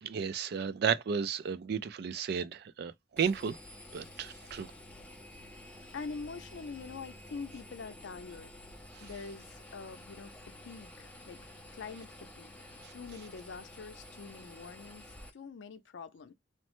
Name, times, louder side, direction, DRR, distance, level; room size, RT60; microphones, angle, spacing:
voice 1, 0.0-3.6 3.9-4.7 9.0-9.1, right 7 dB, 60° right, 0.3 m, -33 dB
Engine, 3.2-15.3, left 1 dB, 5° left, 0.6 m, -51 dB
voice 2, 5.9-8.5 9.0-10.4 10.6-11.4 11.7-15.0 15.3-16.3, left 4 dB, 90° left, 0.5 m, -45 dB
3.1 x 2.0 x 3.0 m
head